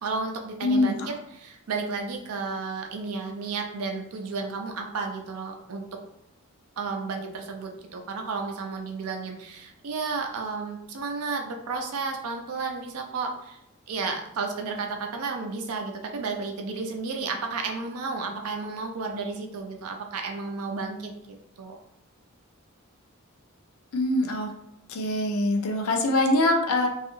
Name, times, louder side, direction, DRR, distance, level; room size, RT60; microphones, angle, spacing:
voice 1, 0.0-6.0 6.8-13.6 13.9-21.8, right 4 dB, 80° right, 3 dB, 0.5 m, -32 dB
voice 2, 0.6-1.1 23.9-24.5 24.9-26.9, left 1 dB, 70° left, 3 dB, 0.5 m, -23 dB
2.7 x 2.3 x 2.6 m, 0.80 s
head